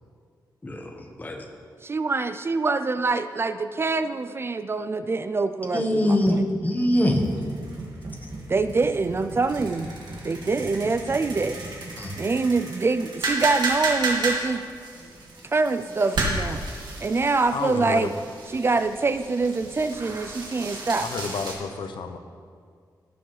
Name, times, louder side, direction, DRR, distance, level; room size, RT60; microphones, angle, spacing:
voice 1, 0.6-1.4 5.7-7.2 12.0-12.1, left 1 dB, 20° left, 2 dB, 1.3 m, -23 dB
voice 2, 1.8-6.4 8.5-9.9 10.2-11.6 12.2-14.6 15.4-16.6 17.0-18.1 18.5-21.1, right 3 dB, 30° right, 11 dB, 0.4 m, -25 dB
sound 1, 7.1-21.5, right 3 dB, 70° right, 2.0 m, -33 dB
voice 3, 17.5-18.1 21.0-22.2, left 5 dB, 90° left, 7 dB, 0.7 m, -31 dB
17.5 x 7.0 x 3.3 m, 2.1 s
wide cardioid pair, 110°, 8 cm